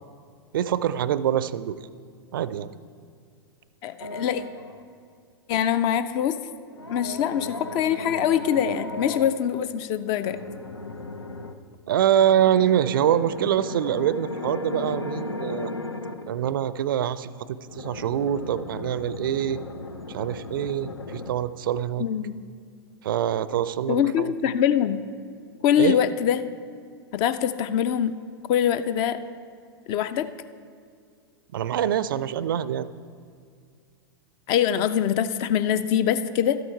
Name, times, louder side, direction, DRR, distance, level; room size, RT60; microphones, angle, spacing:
voice 1, 0.5-1.8 2.3-2.7 11.9-15.7 16.3-19.6 20.1-22.1 23.0-24.5 25.8-26.0 31.5-32.9, right 10 dB, 60° right, 16 dB, 0.4 m, -25 dB
voice 2, 3.8-4.4 5.5-6.4 6.9-10.4 22.0-22.4 23.9-25.0 25.6-26.4 27.1-28.1 28.5-29.2 29.9-30.3 34.5-36.6, left 9 dB, 35° left, 13 dB, 0.5 m, -23 dB
sound 1, 4.0-4.9 6.7-9.3 10.2-11.6 12.2-16.3 17.7-21.3, left 2 dB, 90° left, 0.7 m, -36 dB
12.5 x 7.9 x 4.5 m, 2.2 s
figure-of-eight pair, 100°, 13 cm